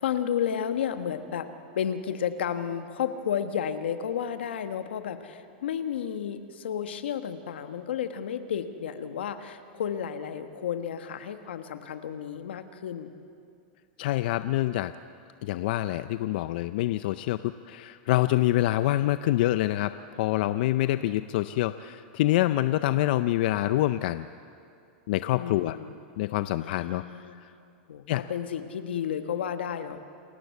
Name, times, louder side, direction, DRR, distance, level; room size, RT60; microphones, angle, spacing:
voice 1, 0.0-1.5 1.7-13.1 25.3-26.0 26.6-27.4 27.9-30.0, left 8 dB, 90° left, 9 dB, 1.3 m, -32 dB
voice 2, 14.0-14.9 15.4-24.3 25.1-25.8 26.2-27.0 27.4-27.5 28.1-28.2, left 15 dB, 60° left, 12 dB, 0.5 m, -26 dB
28.0 x 14.0 x 8.3 m, 2.5 s
supercardioid pair, 140°, 6 cm